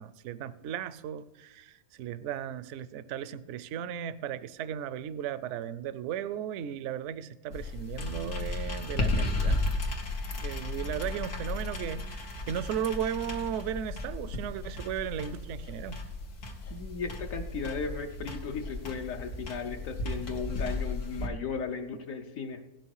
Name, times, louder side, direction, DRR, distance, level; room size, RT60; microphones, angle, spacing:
voice 1, 0.0-9.7 10.4-16.0, right 9 dB, 65° right, 15 dB, 0.8 m, -36 dB
sound 1, 7.5-21.3, left 2 dB, 85° left, 1.8 m, -34 dB
voice 2, 16.7-22.7, left 5 dB, 65° left, 4 dB, 1.1 m, -36 dB
17.0 x 6.3 x 4.7 m, 1.1 s
omnidirectional pair, 1.6 m